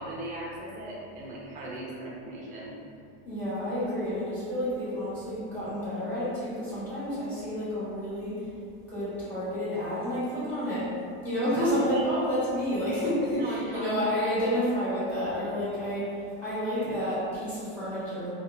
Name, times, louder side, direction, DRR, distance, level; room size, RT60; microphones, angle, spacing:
voice 1, 0.0-2.8 11.6-12.1 13.4-14.1 16.7-17.0, right 1 dB, 25° right, -4 dB, 0.5 m, -38 dB
voice 2, 3.2-8.5 8.9-10.8 11.2-18.3, equal, 5° left, -13 dB, 1.5 m, -30 dB
2.7 x 2.0 x 2.6 m, 2.4 s
supercardioid pair, 140°, 32 cm